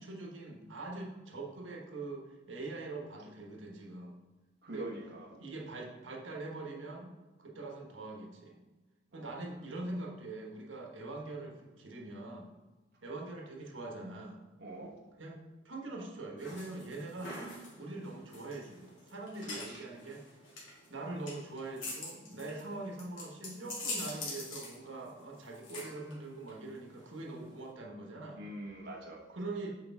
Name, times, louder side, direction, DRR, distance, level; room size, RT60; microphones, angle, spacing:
voice 1, 0.0-4.1 4.7-4.9 5.3-7.1 7.4-8.6 9.1-12.5 13.0-14.4 15.2-17.4 17.8-20.2 20.9-28.4 29.3-29.7, right 2 dB, 90° right, 0 dB, 1.3 m, -43 dB
voice 2, 4.6-5.3 9.1-9.2 14.6-14.9 19.4-19.8 28.4-29.2, right 1 dB, 60° right, -2 dB, 1.1 m, -44 dB
sound 1, 16.4-27.7, left 2 dB, 80° left, 2.4 m, -45 dB
8.4 x 5.0 x 3.6 m, 1.2 s
head